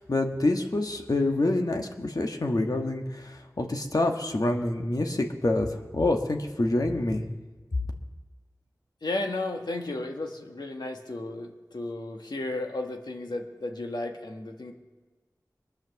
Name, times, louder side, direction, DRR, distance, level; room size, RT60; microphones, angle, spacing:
voice 1, 0.0-5.7 5.9-7.2, left 2 dB, 65° left, 3 dB, 1.6 m, -26 dB
voice 2, 9.0-14.7, left 2 dB, 85° left, 3 dB, 1.6 m, -34 dB
22.5 x 8.7 x 7.1 m, 1.3 s
wide cardioid pair, 50°, 7 cm